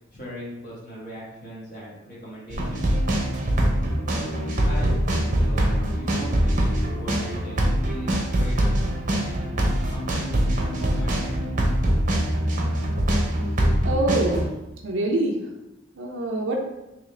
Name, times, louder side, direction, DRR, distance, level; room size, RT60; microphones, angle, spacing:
voice 1, 0.1-2.9 4.0-8.7 9.2-9.3 9.9-11.4, equal, 45° left, -8 dB, 1.3 m, -39 dB
sound 1, 2.5-14.5, right 1 dB, 40° right, 0.7 m, -23 dB
voice 2, 13.8-14.4 14.8-15.4 16.0-16.6, right 2 dB, 90° right, 0 dB, 0.5 m, -25 dB
3.7 x 3.1 x 3.2 m, 0.97 s
head